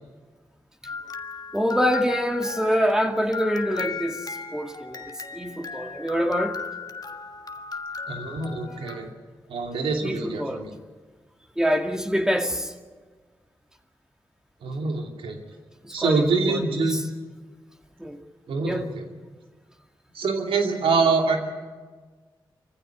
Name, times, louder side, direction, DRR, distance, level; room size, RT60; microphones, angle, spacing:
sound 1, 0.8-9.1, left 5 dB, 45° left, 1.5 m, -36 dB
voice 1, 1.5-6.6 8.8-9.0 10.0-10.6 11.6-12.7 15.8-16.6 16.9-17.0 18.0-18.2 18.6-18.9, equal, 5° right, 4 dB, 2.3 m, -26 dB
voice 2, 8.1-9.1 9.5-10.7 14.6-15.4 15.9-17.0 18.5-19.1 20.1-21.4, right 4 dB, 90° right, 3 dB, 2.6 m, -25 dB
24.0 x 15.5 x 10.0 m, 1.4 s
cardioid pair, 45°, 9 cm